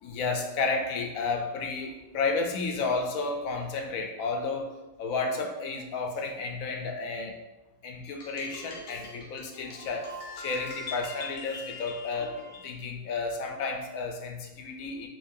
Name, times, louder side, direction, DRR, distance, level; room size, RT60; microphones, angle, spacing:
voice 1, 0.0-4.7 5.0-7.3 7.8-10.1 10.4-15.1, left 4 dB, 75° left, 3 dB, 1.0 m, -32 dB
sound 1, 8.0-12.8, left 3 dB, 55° left, 0.7 m, -43 dB
3.1 x 2.6 x 3.6 m, 1.0 s
omnidirectional pair, 1.5 m